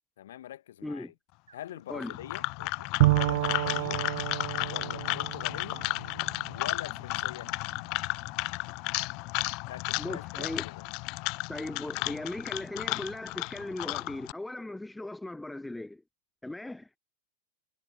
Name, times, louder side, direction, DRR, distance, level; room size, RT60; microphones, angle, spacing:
voice 1, 0.2-1.1 1.5-2.4 3.1-4.1 4.7-5.9 6.5-7.5 9.7-10.9, left 12 dB, 60° left, 1.6 m, -44 dB
voice 2, 0.8-1.1 1.9-2.1 10.0-10.7 11.5-16.0 16.4-16.9, left 2 dB, 5° left, 1.0 m, -38 dB
sound 1, 1.5-6.7, right 6 dB, 70° right, 1.6 m, -53 dB
sound 2, 1.9-14.3, left 28 dB, 45° left, 0.4 m, -33 dB
Bowed string instrument, 3.0-6.7, right 19 dB, 50° right, 0.6 m, -29 dB
figure-of-eight pair, 90°, 0 cm